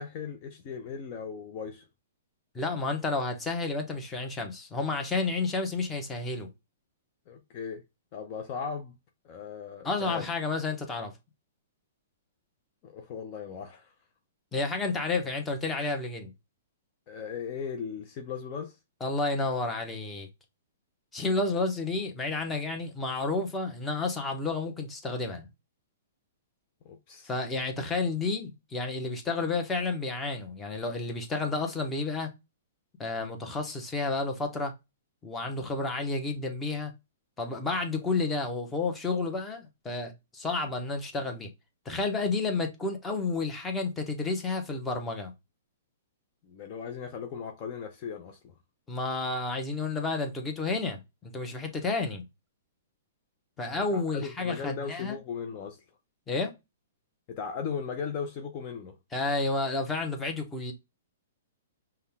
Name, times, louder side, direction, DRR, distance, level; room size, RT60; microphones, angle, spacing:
voice 1, 0.0-1.8 7.3-7.8 8.1-9.0 9.2-10.2 12.8-13.9 17.1-18.8 26.8-27.3 46.4-48.5 53.7-55.8 57.3-59.0, left 6 dB, 40° left, 0.7 m, -37 dB
voice 2, 2.5-6.5 9.8-11.1 14.5-16.3 19.0-20.3 21.1-25.5 27.3-32.3 33.0-34.7 35.2-36.9 37.4-41.5 41.8-45.3 48.9-52.2 53.6-55.2 56.3-56.5 59.1-60.7, left 3 dB, 15° left, 1.0 m, -31 dB
5.3 x 2.3 x 3.5 m
hypercardioid pair, 120°, 0 cm